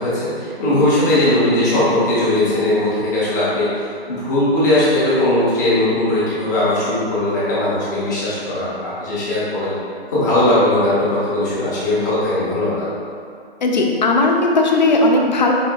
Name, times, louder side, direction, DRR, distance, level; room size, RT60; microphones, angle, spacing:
voice 1, 0.0-3.7 4.1-9.7 10.1-12.9, left 1 dB, 20° left, -10 dB, 0.9 m, -18 dB
voice 2, 13.6-15.5, left 2 dB, 45° left, 1 dB, 0.6 m, -16 dB
5.0 x 4.7 x 2.2 m, 2.3 s
hypercardioid pair, 160°, 31 cm